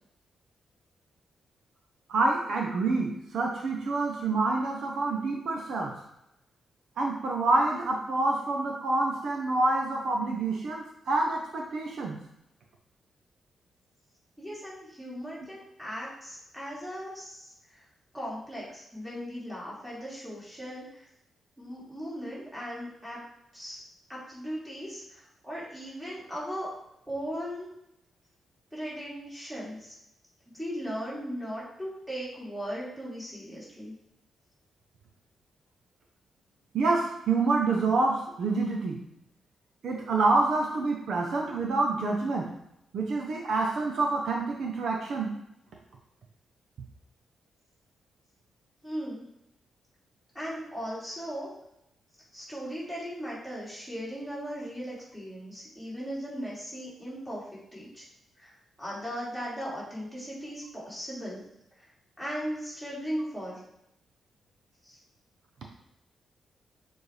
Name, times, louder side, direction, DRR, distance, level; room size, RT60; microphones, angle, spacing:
voice 1, 2.1-5.9 7.0-12.2 36.7-39.0 39.8-42.5 42.9-45.3, right 3 dB, 60° right, 0 dB, 0.9 m, -27 dB
voice 2, 14.4-17.8 18.1-21.1 21.6-23.2 23.5-23.8 24.1-26.7 27.1-27.7 28.7-29.9 30.5-33.9 48.8-49.2 50.3-51.5 52.3-57.4 57.7-58.0 58.4-61.4 61.8-61.9 62.2-63.6 64.8-65.0, equal, 5° right, -8 dB, 2.4 m, -38 dB
6.9 x 4.4 x 3.4 m, 0.81 s
wide cardioid pair, 175°, 0 cm